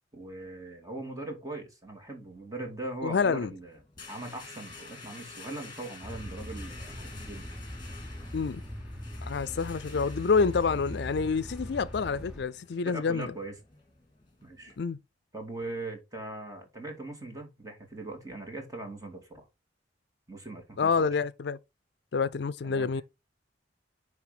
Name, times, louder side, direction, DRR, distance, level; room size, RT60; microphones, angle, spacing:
voice 1, 0.1-3.8 4.1-7.5 12.8-13.5 14.4-14.7 15.3-19.5 20.3-21.2 22.6-23.0, right 2 dB, 20° right, 2.6 m, -40 dB
voice 2, 3.0-3.5 8.3-8.6 9.2-13.3 14.8-15.0 20.8-21.6 22.1-23.0, left 5 dB, 65° left, 0.4 m, -27 dB
sound 1, 3.2-14.8, left 4 dB, 25° left, 3.2 m, -50 dB
sound 2, 6.0-12.4, equal, 5° right, 0.8 m, -41 dB
10.0 x 3.4 x 4.9 m
head